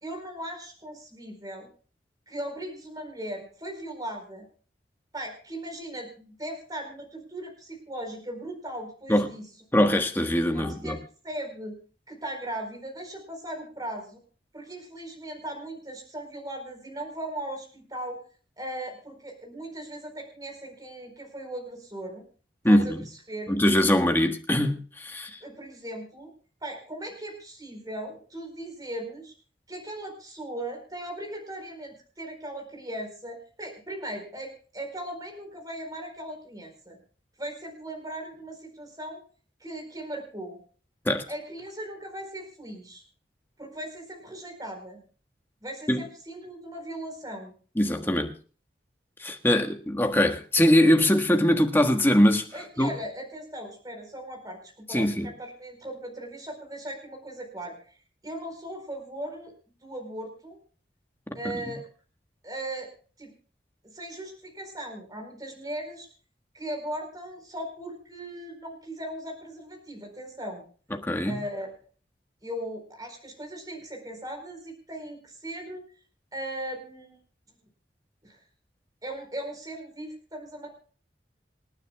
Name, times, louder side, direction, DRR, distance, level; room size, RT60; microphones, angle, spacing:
voice 1, 0.0-1.7 2.3-4.5 5.1-9.4 10.5-11.0 11.2-11.8 12.1-14.2 14.5-18.2 18.6-22.2 22.7-23.5 25.4-26.3 26.6-29.3 29.7-37.0 37.4-39.2 39.6-40.6 41.3-43.0 43.6-45.0 45.6-47.5 49.5-49.6 52.5-58.0 58.2-59.5 59.8-60.6 61.3-61.8 62.4-62.9 63.2-63.3 63.8-66.1 66.5-70.6 71.3-71.7 72.4-75.8 76.3-77.2 78.2-78.4 79.0-80.8, right 1 dB, 20° right, 4.4 m, -38 dB
voice 2, 9.7-11.0 22.6-23.0 23.5-25.4 41.0-41.2 45.9-46.0 47.8-48.3 49.2-52.4 52.8-52.9 54.9-55.3 61.5-61.7 71.0-71.4, left 1 dB, 10° left, 1.5 m, -22 dB
28.0 x 9.5 x 2.3 m
head